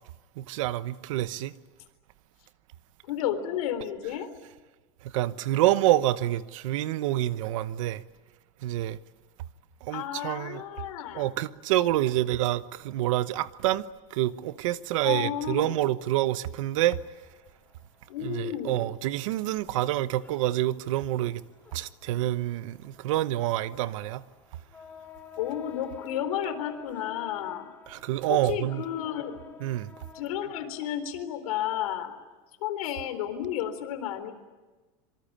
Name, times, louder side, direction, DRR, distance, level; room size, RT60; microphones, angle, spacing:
voice 1, 0.4-1.5 5.0-8.0 8.6-9.0 9.8-10.6 11.1-17.0 18.2-21.4 21.7-24.2 27.9-28.8 29.6-29.9, right 14 dB, 65° right, 1.0 m, -27 dB
voice 2, 3.0-4.3 9.9-11.3 15.0-15.8 18.1-18.9 25.4-27.7 28.3-29.6 30.1-32.1 32.6-34.3, left 10 dB, 85° left, 4.1 m, -32 dB
sound 1, 14.8-30.2, left 5 dB, 10° left, 2.7 m, -51 dB
26.0 x 24.0 x 8.8 m
supercardioid pair, 180°, 18 cm